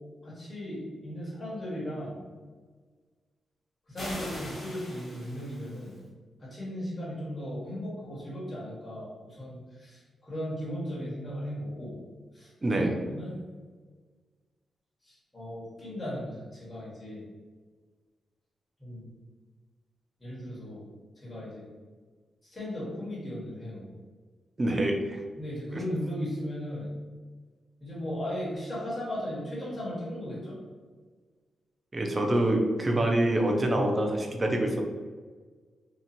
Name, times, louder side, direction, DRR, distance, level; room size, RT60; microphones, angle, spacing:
voice 1, 0.2-2.2 3.9-6.0 6.4-12.0 12.3-12.8 13.1-13.4 15.0-17.2 18.8-19.1 20.2-20.8 21.2-21.7 22.4-23.9 25.4-26.9 27.8-30.6, equal, 20° left, -7 dB, 1.5 m, -36 dB
sound 1, 4.0-6.0, left 1 dB, 35° left, 1.5 m, -41 dB
voice 2, 12.6-13.0 24.6-25.2 25.7-25.8 31.9-34.8, right 1 dB, 25° right, 2 dB, 0.6 m, -26 dB
3.0 x 2.4 x 4.2 m, 1.4 s
wide cardioid pair, 120°, 0 cm